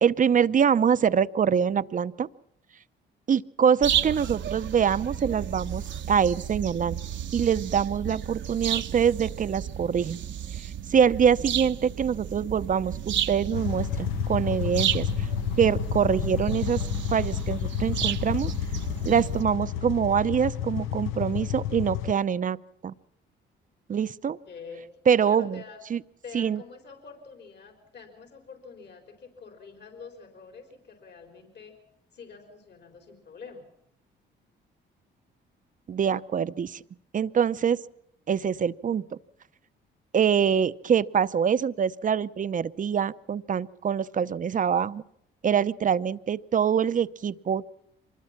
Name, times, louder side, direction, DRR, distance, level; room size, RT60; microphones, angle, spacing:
voice 1, 0.0-2.3 3.3-7.0 7.3-10.2 10.6-15.3 15.6-16.8 17.1-18.5 19.0-22.6 22.8-22.9 23.9-24.4 25.1-25.6 25.9-26.0 26.3-26.6 35.9-36.8 37.1-37.8 38.3-39.0 40.1-45.0 45.4-47.8, right 7 dB, 40° right, 15 dB, 0.7 m, -24 dB
sound 1, 3.8-19.4, right 10 dB, 70° right, 1.0 m, -33 dB
sound 2, 13.5-22.1, left 10 dB, 90° left, 0.8 m, -30 dB
voice 2, 24.5-24.8 25.2-25.8 26.2-31.8 32.1-33.6, left 5 dB, 60° left, 4 dB, 4.3 m, -46 dB
25.0 x 20.5 x 5.9 m, 0.77 s
cardioid pair, 90°, 20 cm